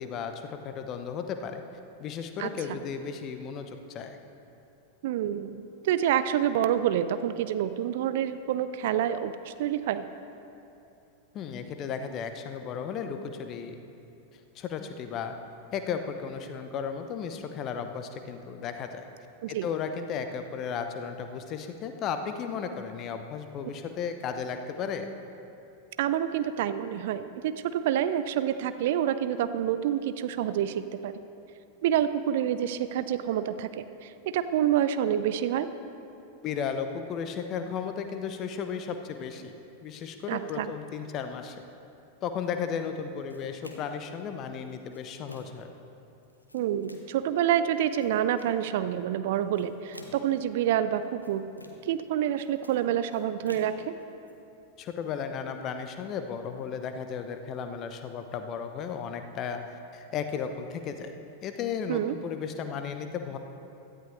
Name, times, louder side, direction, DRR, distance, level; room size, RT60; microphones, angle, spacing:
voice 1, 0.0-1.6 2.0-4.2 11.3-13.8 14.5-15.3 15.7-19.1 19.5-25.1 36.4-39.5 39.8-41.6 42.2-45.7 54.8-59.6 59.9-61.1 61.4-63.4, left 7 dB, 35° left, 7 dB, 0.9 m, -34 dB
voice 2, 2.4-2.8 5.0-10.0 19.4-19.7 26.0-31.2 31.8-35.7 40.3-40.7 46.5-51.4 51.8-53.9 61.9-62.2, right 10 dB, 55° right, 12 dB, 0.5 m, -28 dB
sound 1, 43.3-44.1 44.7-45.7 46.2-47.2 47.8-48.6 49.3-50.4 51.0-52.0 52.3-54.3, left 1 dB, 85° left, 1.0 m, -49 dB
17.0 x 12.5 x 3.3 m, 2.7 s
figure-of-eight pair, 90°, 0 cm